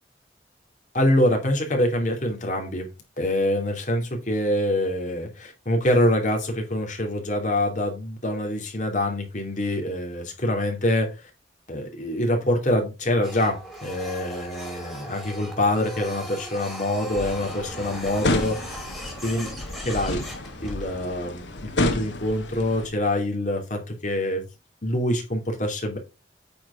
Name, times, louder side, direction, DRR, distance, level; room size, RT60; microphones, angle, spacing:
voice 1, 0.9-2.9 3.2-11.1 11.7-18.8 19.2-20.2 20.6-24.5 24.8-26.0, left 1 dB, 45° left, 2 dB, 2.5 m, -25 dB
Printer, 13.2-21.1, equal, ahead, 2.4 m, -39 dB
sound 1, 17.1-22.9, left 2 dB, 90° left, 1.4 m, -30 dB
8.5 x 4.5 x 4.9 m, 0.27 s
head